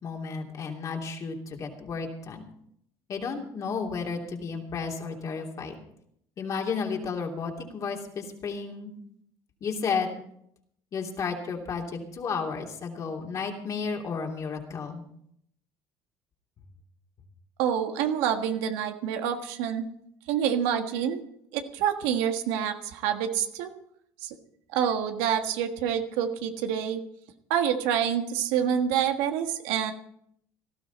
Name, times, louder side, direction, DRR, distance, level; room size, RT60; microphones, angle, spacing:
voice 1, 0.0-2.4 3.1-5.7 6.4-8.9 9.6-10.2 10.9-15.1, left 5 dB, 45° left, 1 dB, 3.0 m, -32 dB
voice 2, 17.6-19.9 20.3-21.2 21.5-23.7 24.2-24.3 24.7-27.0 27.5-29.9, right 9 dB, 90° right, 6 dB, 1.6 m, -27 dB
18.0 x 13.0 x 4.2 m, 0.72 s
cardioid pair, 105°, 8 cm